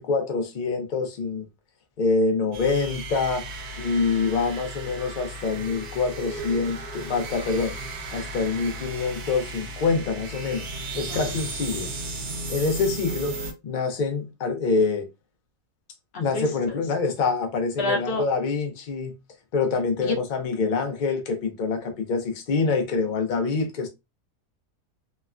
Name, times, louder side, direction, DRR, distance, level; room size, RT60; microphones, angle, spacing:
voice 1, 0.0-1.4 2.0-3.5 3.8-7.8 8.1-11.9 12.5-13.3 13.6-15.1 16.2-19.1 19.5-23.9, left 4 dB, 80° left, 0.4 m, -25 dB
sound 1, 2.5-13.5, right 2 dB, 80° right, 1.3 m, -35 dB
voice 2, 16.1-16.8 17.8-18.2 20.0-20.2, left 2 dB, 50° left, 0.9 m, -29 dB
3.1 x 2.1 x 2.4 m
omnidirectional pair, 1.6 m